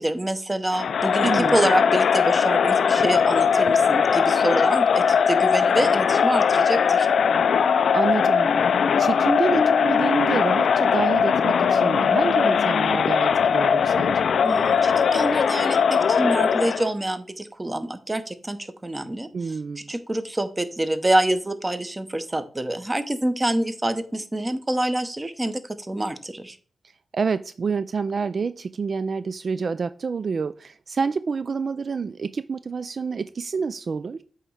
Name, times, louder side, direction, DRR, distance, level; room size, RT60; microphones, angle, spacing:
voice 1, 0.0-7.1 14.4-19.3 19.9-26.6, right 1 dB, 20° right, 0.9 m, -26 dB
Crowd, 0.7-16.9, left 6 dB, 80° left, 0.4 m, -20 dB
voice 2, 1.2-1.6 7.9-8.5 9.0-14.2 19.3-19.9 26.8-34.2, right 5 dB, 55° right, 0.3 m, -28 dB
8.2 x 3.0 x 5.6 m
cardioid pair, 80°, 0 cm